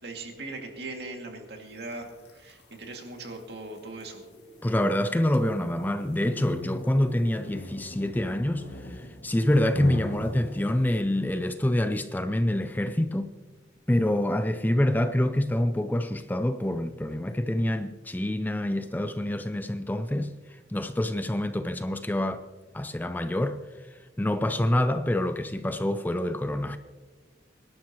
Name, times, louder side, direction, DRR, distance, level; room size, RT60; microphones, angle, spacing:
voice 1, 0.0-2.1 2.3-4.2, right 2 dB, 65° right, 2.3 m, -39 dB
sound 1, 1.9-11.3, left 1 dB, 70° left, 2.0 m, -41 dB
voice 2, 4.6-13.3 13.9-22.5 22.7-23.6 24.2-26.8, left 1 dB, 10° left, 0.4 m, -26 dB
24.0 x 11.5 x 3.0 m
head